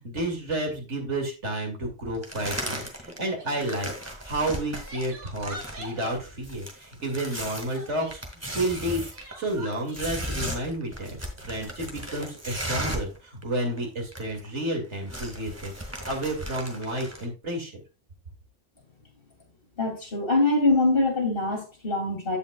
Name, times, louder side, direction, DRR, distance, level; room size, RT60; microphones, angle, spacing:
voice 1, 0.0-9.0 9.4-15.7 16.1-17.7, right 1 dB, 75° right, 2 dB, 2.6 m, -31 dB
sound 1, 2.2-3.2 3.5-13.2 13.4-13.5 13.8-14.5 14.8-17.2, right 1 dB, 15° right, 1.6 m, -36 dB
Crying sobbing, 3.3-3.6 4.4-6.2 7.3-8.2 9.1-10.0, right 1 dB, 55° right, 2.1 m, -44 dB
voice 2, 19.8-22.4, left 2 dB, 50° left, 0 dB, 3.0 m, -23 dB
15.0 x 5.3 x 2.3 m, 0.31 s
omnidirectional pair, 1.2 m